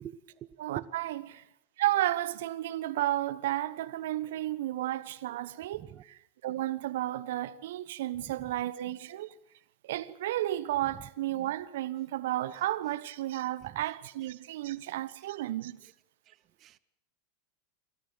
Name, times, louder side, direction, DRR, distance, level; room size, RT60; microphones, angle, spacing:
voice 1, 0.0-0.5 0.8-0.9 5.8-6.0 13.6-13.7 16.6-16.7, right 12 dB, 40° right, 0.9 m, -43 dB
voice 2, 0.6-1.4 1.8-9.3 9.8-15.8, right 14 dB, 65° right, 1.0 m, -33 dB
27.0 x 14.0 x 7.9 m
figure-of-eight pair, 90°, 0 cm